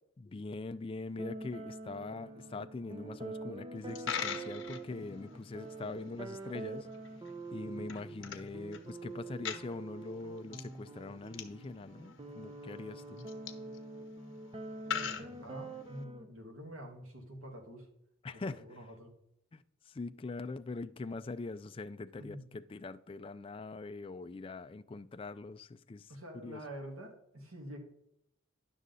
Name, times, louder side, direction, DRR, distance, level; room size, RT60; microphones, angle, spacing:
voice 1, 0.2-6.9 7.5-13.3 18.2-18.6 19.5-26.6, left 3 dB, 25° left, 0.3 m, -43 dB
sound 1, 1.2-16.3, right 2 dB, 25° right, 0.6 m, -46 dB
Coin (dropping), 3.8-16.0, left 7 dB, 60° left, 0.9 m, -44 dB
voice 2, 14.9-17.9 18.3-19.1 22.2-22.4 26.1-27.8, equal, 85° right, 2.1 m, -47 dB
11.0 x 6.3 x 4.0 m
head